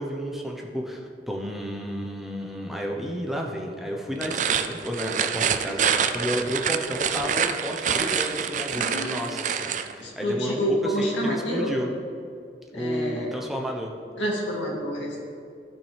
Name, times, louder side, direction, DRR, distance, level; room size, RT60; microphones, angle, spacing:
voice 1, 0.0-11.9 12.7-13.9, equal, ahead, 0 dB, 0.9 m, -32 dB
sound 1, 4.1-9.9, right 7 dB, 45° right, 0.4 m, -26 dB
voice 2, 8.8-9.2 10.0-11.7 12.7-13.3 14.2-15.2, equal, 85° left, -2 dB, 2.2 m, -28 dB
15.5 x 5.9 x 3.4 m, 2.5 s
head